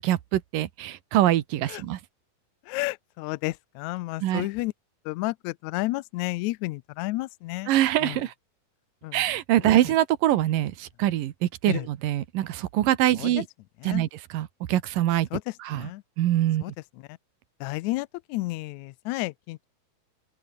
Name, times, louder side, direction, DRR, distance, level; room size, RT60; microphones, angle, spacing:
voice 1, 0.0-2.0 4.2-4.5 7.7-8.3 9.1-13.5 13.8-15.3 15.6-15.9 16.2-16.6, right 13 dB, 80° right, 2.9 m, -24 dB
voice 2, 2.7-4.7 5.0-7.7 8.0-8.2 9.0-9.2 11.7-11.8 13.2-13.3 13.8-14.0 15.3-15.4 15.7-16.0 16.6-16.7 17.1-17.2 17.6-19.7, left 20 dB, 90° left, 1.6 m, -31 dB
open air
omnidirectional pair, 3.9 m